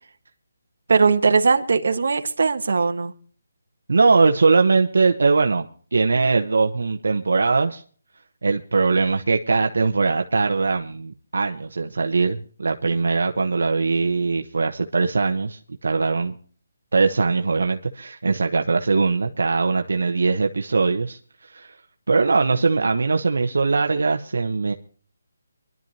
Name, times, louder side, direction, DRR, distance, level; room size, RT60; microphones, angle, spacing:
voice 1, 0.9-3.1, right 4 dB, 65° right, 7 dB, 1.5 m, -19 dB
voice 2, 3.9-7.8 8.4-16.3 16.9-21.7 22.1-24.7, right 4 dB, 80° right, 4 dB, 1.1 m, -21 dB
24.0 x 12.0 x 2.9 m, 0.43 s
hypercardioid pair, 170°, 0 cm